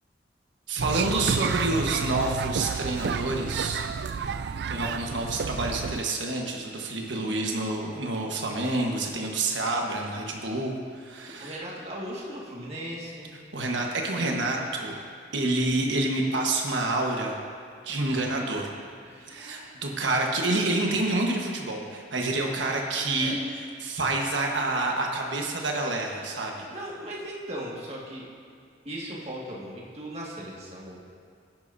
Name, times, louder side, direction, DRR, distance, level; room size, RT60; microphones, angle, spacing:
voice 1, 0.7-3.8 4.7-11.6 13.5-15.0 15.3-17.4 17.8-18.7 19.3-26.7, right 2 dB, 75° right, 0 dB, 1.3 m, -28 dB
sound 1, 0.8-6.0, right 6 dB, 60° right, 0.3 m, -30 dB
voice 2, 7.1-7.7 11.4-13.3 18.1-18.4 19.0-19.7 23.2-23.4 26.7-28.2 28.9-31.0, right 1 dB, 35° right, -5 dB, 1.8 m, -38 dB
15.5 x 10.5 x 2.7 m, 2.2 s
head